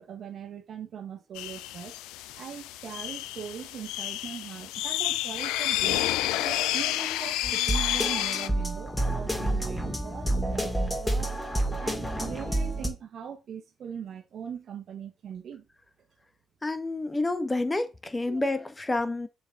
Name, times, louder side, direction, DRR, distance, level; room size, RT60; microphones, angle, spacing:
voice 1, 0.0-1.9 2.3-6.0 6.3-11.3 11.8-15.6 18.3-18.4, right 7 dB, 65° right, 1.5 m, -40 dB
sound 1, 1.4-8.5, left 14 dB, 80° left, 0.4 m, -30 dB
sound 2, 7.4-12.9, right 1 dB, 10° left, 2.7 m, -29 dB
voice 2, 16.6-19.3, left 2 dB, 25° left, 1.3 m, -29 dB
7.1 x 4.5 x 3.9 m
hypercardioid pair, 45°, 0 cm